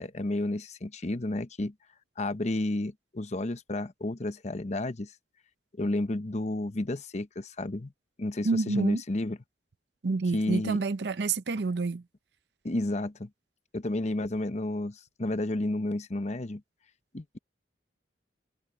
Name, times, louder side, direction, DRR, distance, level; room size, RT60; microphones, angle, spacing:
voice 1, 0.0-1.7 2.2-5.1 5.8-7.9 8.2-9.4 10.3-10.8 12.6-13.3 13.7-16.6 17.1-17.4, left 1 dB, 40° left, 0.9 m, -31 dB
voice 2, 8.4-9.0 10.0-12.0, right 3 dB, 65° right, 0.6 m, -28 dB
head